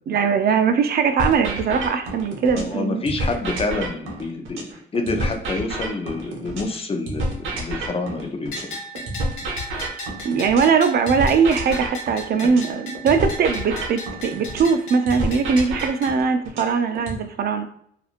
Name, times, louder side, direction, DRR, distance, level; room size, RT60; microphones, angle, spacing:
voice 1, 0.1-3.0 10.2-17.7, right 6 dB, 55° right, 8 dB, 0.4 m, -20 dB
sound 1, 1.2-2.8 3.1-6.8 7.1-10.8 11.1-14.8 15.1-17.2, right 1 dB, 90° right, 0.7 m, -29 dB
voice 2, 2.5-8.7 12.4-12.5, left 3 dB, 30° left, 4 dB, 0.5 m, -28 dB
Bell, 8.5-16.1, equal, 90° left, 1.1 m, -36 dB
2.8 x 2.4 x 2.4 m, 0.67 s
cardioid pair, 90°, 20 cm